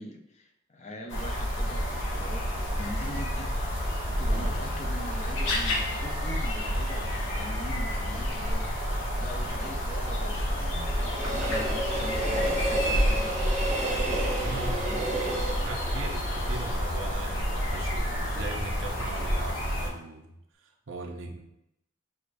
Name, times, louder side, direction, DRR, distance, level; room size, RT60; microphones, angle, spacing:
voice 1, 0.0-3.6 4.1-15.6, left 1 dB, 35° left, 2 dB, 0.5 m, -42 dB
sound 1, 1.1-19.9, equal, 65° left, 0.9 m, -29 dB
Train, 8.8-17.9 18.3-18.4, right 1 dB, 35° right, 0.8 m, -33 dB
voice 2, 14.4-14.9 15.6-20.3 20.6-21.4, right 3 dB, 70° right, 2 dB, 0.6 m, -40 dB
6.4 x 2.4 x 2.5 m, 0.83 s
head